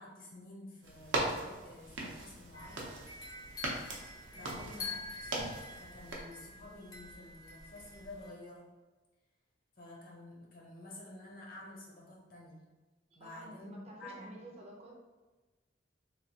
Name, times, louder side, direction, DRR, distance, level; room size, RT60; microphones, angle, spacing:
voice 1, 0.0-2.9 4.3-5.4 5.8-8.7 9.8-12.6 13.1-14.4, left 1 dB, 50° left, -3 dB, 0.7 m, -50 dB
sound 1, 0.8-6.1, right 2 dB, 90° right, 0.6 m, -39 dB
sound 2, 2.5-8.3, left 3 dB, 20° left, 0.4 m, -47 dB
voice 2, 4.3-4.6 13.1-14.9, right 1 dB, 35° right, -1 dB, 0.5 m, -52 dB
3.0 x 2.3 x 2.7 m, 1.2 s
head